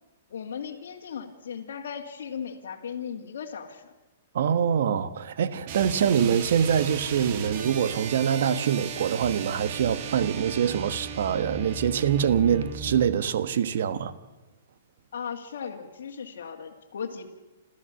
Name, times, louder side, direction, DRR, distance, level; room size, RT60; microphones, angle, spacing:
voice 1, 0.3-3.9 15.1-17.3, left 7 dB, 75° left, 2.1 m, -37 dB
voice 2, 4.3-14.1, right 8 dB, 70° right, 1.2 m, -24 dB
sound 1, 5.6-13.2, right 5 dB, 45° right, 2.1 m, -36 dB
28.5 x 13.5 x 7.0 m
hypercardioid pair, 150°, 0 cm